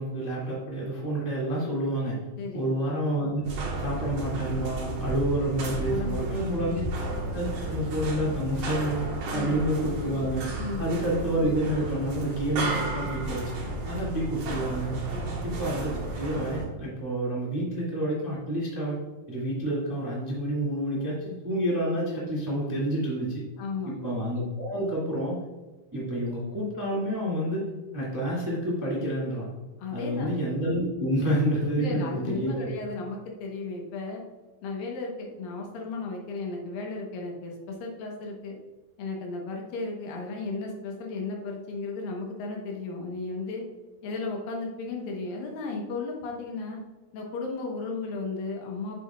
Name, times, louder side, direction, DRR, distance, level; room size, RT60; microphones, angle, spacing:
voice 1, 0.0-2.2 2.5-3.4 3.8-6.8 7.3-9.0 9.3-10.5 10.8-15.1 15.4-19.0 19.3-23.4 23.9-25.3 25.9-27.7 27.9-29.5 29.9-32.7, right 1 dB, 10° right, -6 dB, 0.9 m, -29 dB
voice 2, 2.4-2.7 5.9-7.0 9.3-9.5 10.6-10.9 15.0-15.5 23.6-24.0 29.8-30.3 31.8-34.2 34.6-38.6 39.0-43.7 44.0-46.8 47.1-49.0, left 3 dB, 75° left, 0 dB, 2.8 m, -35 dB
sound 1, 3.5-16.7, right 2 dB, 65° right, 2.9 m, -33 dB
7.9 x 7.4 x 2.4 m, 1.2 s
omnidirectional pair, 4.2 m